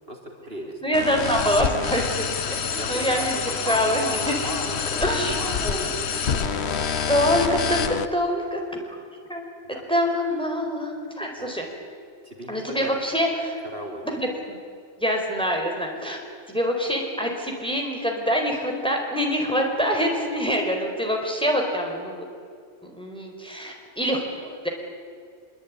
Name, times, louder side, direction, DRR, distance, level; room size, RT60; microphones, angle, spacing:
voice 1, 0.1-0.8 2.7-6.7 9.6-9.8 11.4-11.5 12.2-13.0 13.7-14.2, equal, 55° right, 0 dB, 4.2 m, -37 dB
voice 2, 0.8-4.3 5.0-5.9 6.3-6.4 7.1-8.6 8.8-9.0 9.3-9.5 9.9-11.7 12.5-13.6 14.2-14.6 15.0-16.2 16.5-22.2 22.8-24.7, equal, 5° left, 1 dB, 4.7 m, -25 dB
sound 1, 0.9-8.0, left 6 dB, 65° left, 1.3 m, -27 dB
25.0 x 23.5 x 9.9 m, 2.2 s
omnidirectional pair, 1.2 m